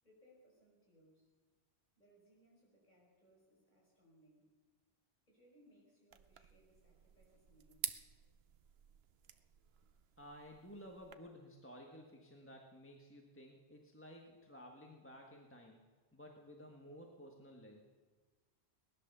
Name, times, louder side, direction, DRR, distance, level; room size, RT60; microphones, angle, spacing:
voice 1, 0.0-1.3 2.0-4.5 5.3-7.9, equal, 45° left, -3 dB, 5.5 m, -68 dB
sound 1, 6.1-11.1, right 8 dB, 70° right, 1.0 m, -49 dB
voice 2, 10.2-15.8 16.1-17.8, equal, 10° left, 0 dB, 1.5 m, -55 dB
19.0 x 11.0 x 6.8 m, 1.3 s
omnidirectional pair, 1.1 m